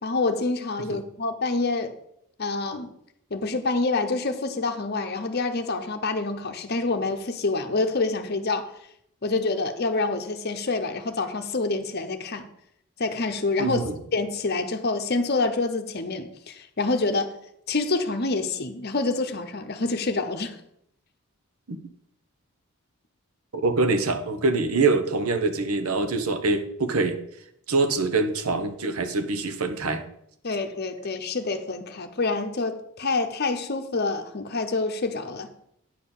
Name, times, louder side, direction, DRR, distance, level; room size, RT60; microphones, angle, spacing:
voice 1, 0.0-1.9 2.4-2.9 3.3-8.7 9.2-12.5 13.0-13.9 14.1-17.3 17.7-20.6 30.4-35.5, left 3 dB, 45° left, 6 dB, 0.9 m, -27 dB
voice 2, 13.6-14.0 21.7-21.8 23.5-27.2 27.7-30.0, right 3 dB, 80° right, 8 dB, 1.0 m, -24 dB
9.3 x 4.5 x 7.1 m, 0.74 s
head